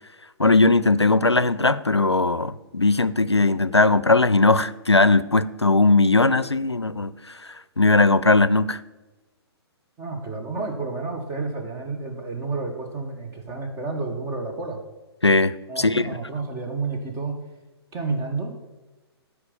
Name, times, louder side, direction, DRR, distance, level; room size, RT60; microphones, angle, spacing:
voice 1, 0.4-7.1 7.4-8.8 15.2-16.1, left 3 dB, 90° left, 16 dB, 0.5 m, -19 dB
voice 2, 10.0-14.8 15.7-17.4 17.9-18.6, right 3 dB, 20° right, 2 dB, 1.7 m, -30 dB
13.5 x 4.9 x 7.1 m, 1.1 s
figure-of-eight pair, 120°, 14 cm